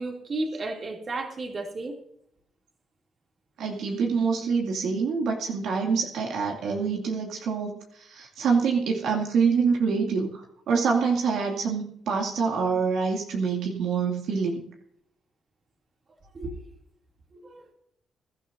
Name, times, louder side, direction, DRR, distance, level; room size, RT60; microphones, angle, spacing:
voice 1, 0.0-2.0 16.3-16.6 17.4-17.6, right 2 dB, 40° right, 2 dB, 2.7 m, -33 dB
voice 2, 3.6-14.6, right 5 dB, 80° right, 0 dB, 2.4 m, -26 dB
22.5 x 11.5 x 2.7 m, 0.70 s
cardioid pair, 90°, 0 cm